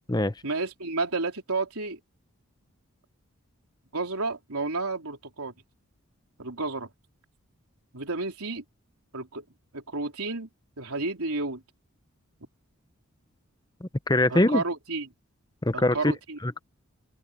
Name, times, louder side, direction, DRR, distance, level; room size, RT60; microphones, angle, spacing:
voice 1, 0.4-2.0 3.9-5.5 6.4-6.9 7.9-8.6 9.1-9.4 9.7-10.5 10.8-11.6 14.3-15.1 15.7-16.4, right 3 dB, 90° right, 4.0 m, -31 dB
voice 2, 13.8-14.6 15.6-16.1 16.4-16.6, left 1 dB, 20° left, 0.9 m, -23 dB
head